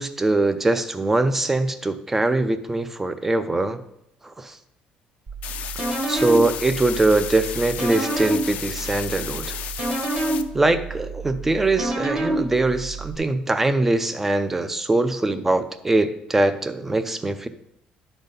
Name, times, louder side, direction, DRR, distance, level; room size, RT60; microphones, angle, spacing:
voice 1, 0.0-3.8 4.4-4.5 6.1-9.6 10.5-17.5, right 2 dB, 10° right, 11 dB, 0.4 m, -22 dB
sound 1, 5.3-13.2, right 2 dB, 30° right, 1.1 m, -29 dB
sound 2, 5.4-10.4, left 10 dB, 60° left, 0.5 m, -33 dB
11.0 x 4.0 x 5.2 m, 0.82 s
cardioid pair, 170°, 3 cm